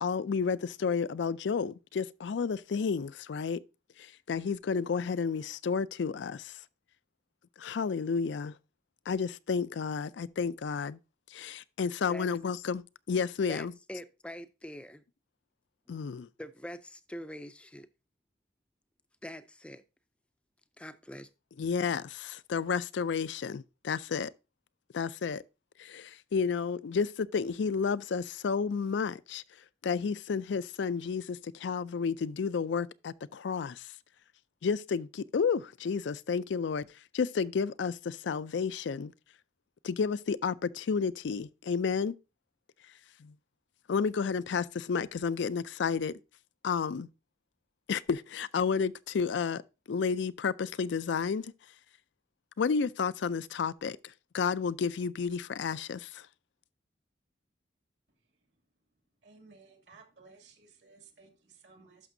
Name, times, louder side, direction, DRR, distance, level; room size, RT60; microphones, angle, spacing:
voice 1, 0.0-3.6 4.0-6.6 7.6-8.5 9.1-11.0 11.3-13.7 15.9-16.3 21.6-24.3 24.9-25.4 25.8-29.4 29.8-33.9 34.6-36.9 37.1-39.1 39.8-42.1 43.2-43.3 43.9-46.1 46.6-47.1 47.9-49.6 49.9-51.5 52.6-54.0 54.3-56.3, left 5 dB, 75° left, 0.4 m, -31 dB
voice 2, 13.5-15.0 16.4-17.9 19.2-19.8 20.8-21.3, equal, 5° left, 0.4 m, -44 dB
voice 3, 59.2-62.1, right 4 dB, 70° right, 2.5 m, -57 dB
12.0 x 5.9 x 2.7 m
head